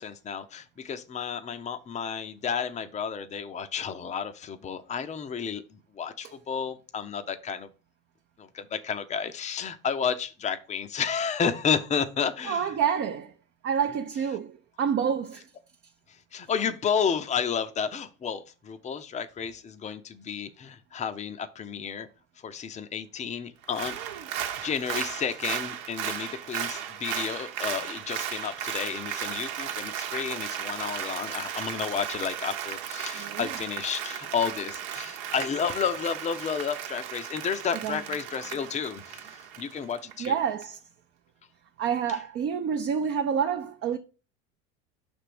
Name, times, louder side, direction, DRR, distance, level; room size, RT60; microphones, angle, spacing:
voice 1, 0.0-7.7 8.4-12.7 16.3-22.1 22.4-24.0 24.6-40.4, left 7 dB, 20° left, 0.6 m, -31 dB
voice 2, 12.4-13.3 13.6-15.5 23.9-24.3 33.2-33.5 37.8-38.0 40.2-40.8 41.8-44.0, right 7 dB, 40° right, 0.7 m, -28 dB
Applause, 23.6-40.3 40.6-40.7, right 9 dB, 70° right, 1.0 m, -35 dB
5.8 x 3.5 x 5.8 m
hypercardioid pair, 90°, 34 cm